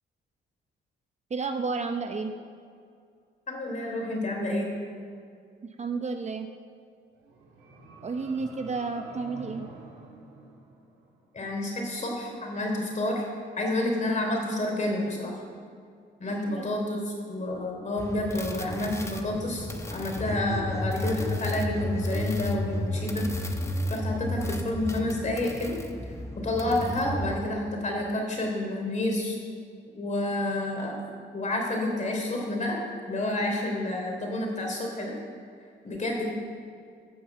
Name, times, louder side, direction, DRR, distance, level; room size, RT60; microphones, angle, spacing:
voice 1, 1.3-2.3 5.6-6.5 8.0-9.7 16.3-16.7, right 4 dB, 35° right, 6 dB, 0.8 m, -32 dB
voice 2, 3.5-4.7 11.3-13.2 13.6-15.3 16.2-23.3 23.9-25.8 26.3-29.4 29.9-32.8 33.1-35.1 35.8-36.3, left 1 dB, 40° left, 0 dB, 3.3 m, -29 dB
sound 1, 7.1-11.3, right 2 dB, 80° right, 2.2 m, -48 dB
sound 2, 18.0-27.4, left 1 dB, 15° left, 1.0 m, -32 dB
11.0 x 6.8 x 7.4 m, 2.3 s
cardioid pair, 90°, 20 cm